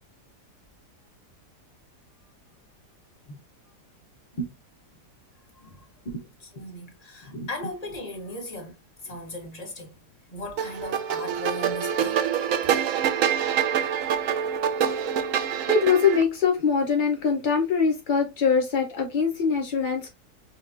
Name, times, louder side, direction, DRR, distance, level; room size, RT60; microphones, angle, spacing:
voice 1, 5.5-5.9 6.4-10.0 10.3-12.2, left 1 dB, 25° left, 1.0 m, -38 dB
sound 1, 10.6-16.2, right 8 dB, 70° right, 0.8 m, -25 dB
voice 2, 15.6-20.1, left 5 dB, 60° left, 0.5 m, -23 dB
5.7 x 2.4 x 2.5 m
omnidirectional pair, 1.9 m